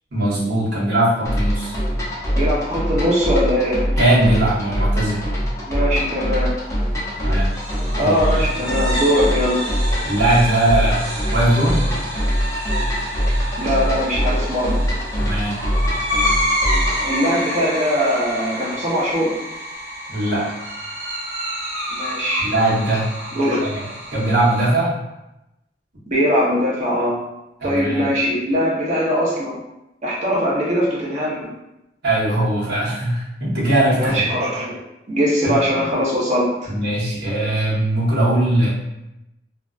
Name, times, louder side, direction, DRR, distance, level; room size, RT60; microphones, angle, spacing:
voice 1, 0.1-1.7 4.0-5.2 7.2-7.5 8.0-8.5 10.0-11.9 15.2-15.6 20.1-20.4 22.4-23.1 23.6-24.9 27.6-28.1 32.0-34.2 35.4-35.6 36.6-38.7, right 1 dB, 65° right, -8 dB, 1.0 m, -20 dB
sound 1, 1.2-17.1, equal, 20° left, 0.5 m, -23 dB
voice 2, 2.3-3.9 5.7-6.6 8.0-9.6 13.6-14.9 17.0-19.3 21.9-22.5 23.3-23.7 26.1-27.2 27.6-29.6 30.0-31.5 34.0-34.8 35.1-36.5, equal, 45° right, -5 dB, 0.7 m, -21 dB
sound 2, 7.4-24.7, equal, 85° right, 0.7 m, -28 dB
2.5 x 2.2 x 2.4 m, 0.91 s
head